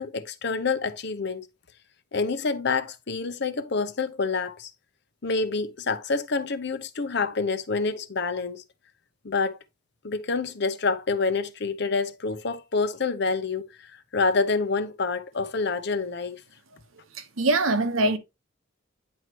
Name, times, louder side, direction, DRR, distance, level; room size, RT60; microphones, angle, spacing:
voice 1, 0.0-1.4 2.1-4.7 5.2-8.6 9.2-9.6 10.0-16.4, left 4 dB, 55° left, 0.8 m, -27 dB
voice 2, 17.1-18.2, right 2 dB, 85° right, 1.1 m, -23 dB
9.6 x 4.5 x 3.0 m
head